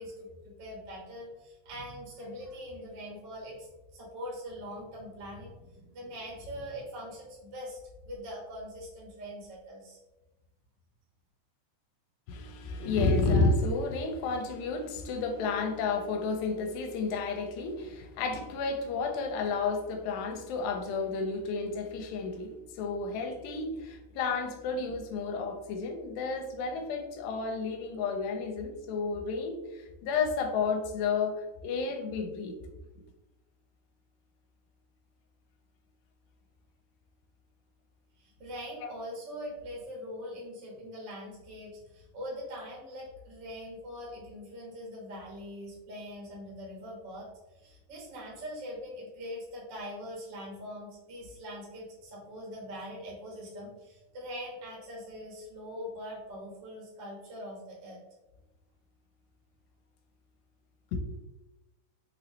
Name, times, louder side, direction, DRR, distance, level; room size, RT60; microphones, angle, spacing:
voice 1, 0.0-7.8 8.0-10.0 38.2-47.3 47.6-58.0, equal, 50° right, -4 dB, 1.4 m, -42 dB
voice 2, 12.3-32.6 60.9-61.0, left 4 dB, 85° left, 4 dB, 2.3 m, -31 dB
5.9 x 2.9 x 3.0 m, 1.0 s
omnidirectional pair, 4.1 m